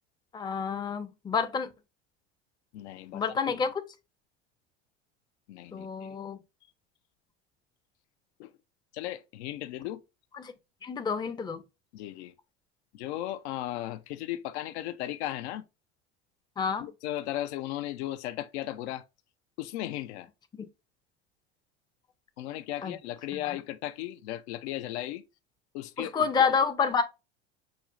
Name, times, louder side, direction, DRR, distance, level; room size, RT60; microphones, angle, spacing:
voice 1, 0.3-1.7 3.1-3.7 5.7-6.4 10.3-10.5 10.8-11.6 16.6-16.9 20.5-20.7 22.8-22.9 23.3-23.6 26.0-27.0, left 6 dB, 15° left, 0.4 m, -29 dB
voice 2, 2.7-3.7 5.5-6.1 8.4-8.5 8.9-10.0 11.9-12.3 12.9-15.6 16.8-19.0 19.6-20.3 22.4-25.2 25.7-26.5, left 14 dB, 75° left, 0.5 m, -36 dB
5.9 x 2.1 x 2.4 m
hypercardioid pair, 85°, 34 cm